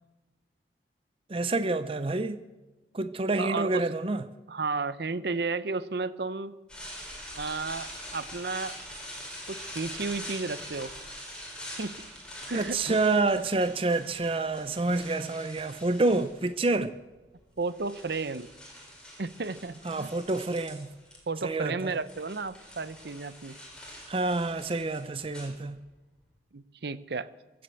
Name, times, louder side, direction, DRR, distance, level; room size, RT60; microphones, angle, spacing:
voice 1, 1.3-2.4 2.9-4.2 12.5-16.9 19.8-20.9 21.4-21.9 24.1-25.8, right 2 dB, 30° right, 0.5 m, -28 dB
voice 2, 3.4-3.9 4.5-6.5 7.4-8.8 9.5-10.9 11.8-11.9 12.5-13.0 17.6-18.5 19.2-20.1 21.3-23.6 26.5-27.3, right 4 dB, 65° right, 0.7 m, -33 dB
sound 1, 6.7-16.6 17.4-21.2 21.5-26.1, equal, 5° left, 3.8 m, -44 dB
23.0 x 7.8 x 7.8 m
head